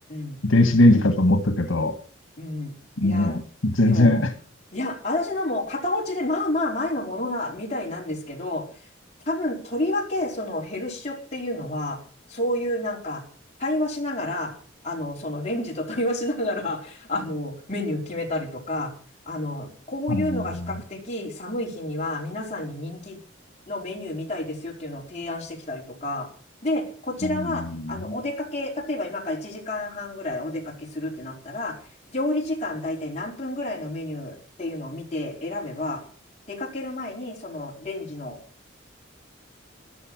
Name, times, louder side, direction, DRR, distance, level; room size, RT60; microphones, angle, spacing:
voice 1, 0.4-1.9 3.0-4.3 20.1-20.4 27.2-27.9, left 1 dB, 85° left, 8 dB, 1.7 m, -20 dB
voice 2, 2.4-2.7 3.0-3.4 3.8-4.2 4.7-8.6 9.3-12.0 12.3-13.2 13.6-14.5 14.8-18.9 19.3-23.2 23.7-26.3 26.6-31.8 32.1-36.0 36.5-38.4, left 1 dB, 35° left, -1 dB, 4.5 m, -30 dB
14.0 x 11.0 x 6.3 m, 0.42 s
head